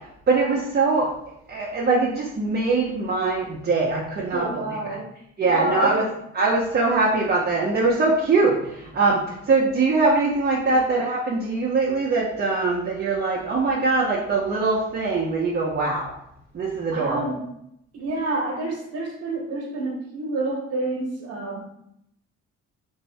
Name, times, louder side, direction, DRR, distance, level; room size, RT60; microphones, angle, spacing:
voice 1, 0.3-1.1 1.5-4.6 5.4-6.0 6.3-16.1 16.5-17.2, right 3 dB, 35° right, -4 dB, 0.7 m, -22 dB
voice 2, 4.3-5.1 5.4-6.1 10.7-10.8 16.9-17.4 17.9-21.7, right 2 dB, 55° right, 0 dB, 1.1 m, -28 dB
3.5 x 2.7 x 3.3 m, 0.75 s
cardioid pair, 90°, 30 cm